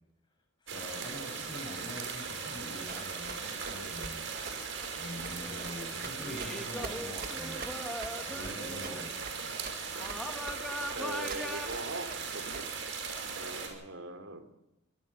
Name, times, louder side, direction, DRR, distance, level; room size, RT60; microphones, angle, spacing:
voice 1, 0.6-4.2 5.0-7.6 8.3-9.1, left 1 dB, 25° left, 3 dB, 7.0 m, -45 dB
sound 1, 0.7-13.7, right 5 dB, 70° right, 5.8 m, -39 dB
Run, 2.9-12.9, right 4 dB, 45° right, 1.5 m, -45 dB
sound 2, 5.4-5.7 6.2-9.0 10.0-11.7, equal, 5° left, 2.2 m, -40 dB
voice 2, 10.9-12.7 13.3-14.5, right 2 dB, 85° right, 6 dB, 3.1 m, -41 dB
25.0 x 19.5 x 5.7 m, 0.93 s
head